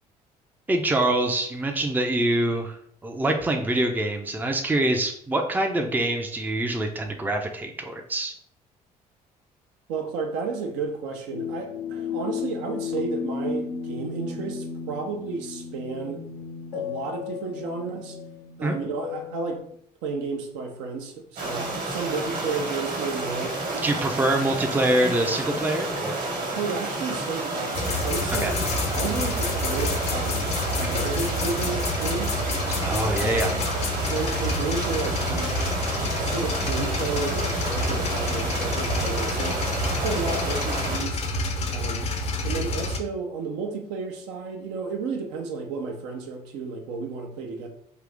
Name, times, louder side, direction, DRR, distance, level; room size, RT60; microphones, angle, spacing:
voice 1, 0.7-2.8 3.0-8.3 18.6-18.8 23.8-26.2 28.4-28.5 32.8-33.5, right 1 dB, 10° right, 4 dB, 0.5 m, -25 dB
voice 2, 9.9-16.2 16.7-18.2 18.6-19.7 20.0-23.6 23.9-24.3 26.3-32.4 33.2-33.7 34.1-35.6 36.0-41.2 41.7-42.1 42.4-47.7, right 4 dB, 60° right, 4 dB, 0.6 m, -32 dB
sound 1, 11.3-19.6, left 6 dB, 85° left, 0.6 m, -34 dB
sound 2, 21.4-41.0, right 2 dB, 45° right, 1.2 m, -30 dB
sound 3, 27.7-43.0, left 2 dB, 35° left, 0.6 m, -28 dB
3.8 x 2.7 x 3.4 m, 0.66 s
figure-of-eight pair, 50°, 20 cm